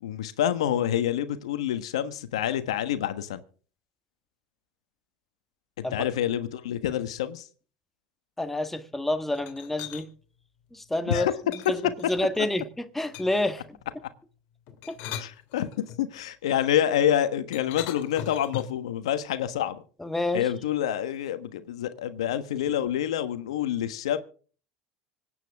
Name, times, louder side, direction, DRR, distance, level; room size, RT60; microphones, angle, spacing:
voice 1, 0.0-3.4 5.8-7.5 11.1-11.3 15.2-15.7 16.0-19.8 20.3-24.2, left 10 dB, 90° left, 1.3 m, -27 dB
voice 2, 8.4-10.1 10.7-12.7 12.9-13.6 14.9-15.0 20.0-20.5, left 1 dB, 5° left, 1.5 m, -28 dB
sound 1, 9.3-10.1 11.5-12.4 13.1-13.5 14.7-16.0 17.5-18.9, left 10 dB, 65° left, 2.6 m, -39 dB
25.5 x 9.3 x 3.6 m
supercardioid pair, 100°, 3 cm